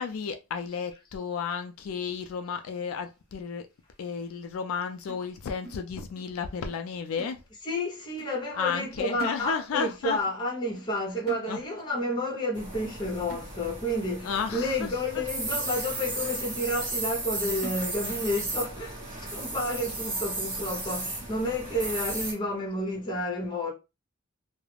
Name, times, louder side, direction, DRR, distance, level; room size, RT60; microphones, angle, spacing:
voice 1, 0.0-3.7 4.0-7.4 8.5-10.2 11.5-11.6 14.2-15.0 19.9-20.0, left 6 dB, 75° left, 0.3 m, -33 dB
sound 1, 5.1-6.4 6.7-6.9 7.2-7.9 8.2-8.4 8.7-9.9 10.2-10.5 10.8-11.0 11.3-11.9 12.3-12.5 12.8-13.0 13.3-13.9 14.4-14.5 15.0-15.1 15.5-16.2 16.6-16.7 17.1-17.3 17.6-18.3 18.7-18.8 19.2-19.3 19.7-20.2 20.7-20.8 21.2-21.4, right 1 dB, 45° right, 1.1 m, -46 dB
voice 2, 7.6-23.7, left 1 dB, 20° left, 0.8 m, -30 dB
sound 2, 12.5-22.3, right 2 dB, 25° right, 1.0 m, -35 dB
2.3 x 2.0 x 3.2 m
head